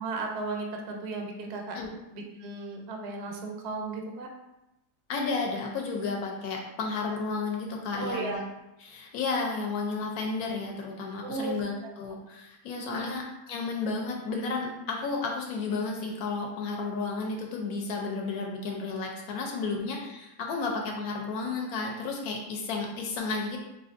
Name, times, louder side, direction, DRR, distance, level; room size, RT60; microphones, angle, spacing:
voice 1, 0.0-1.8 2.1-4.3 7.9-8.4 11.2-11.6 11.8-11.9 12.7-13.2 19.7-19.8, right 3 dB, 70° right, 2 dB, 0.6 m, -35 dB
voice 2, 5.1-8.4 8.8-23.6, left 4 dB, 70° left, 0 dB, 1.0 m, -32 dB
4.3 x 2.5 x 2.5 m, 0.92 s
omnidirectional pair, 1.7 m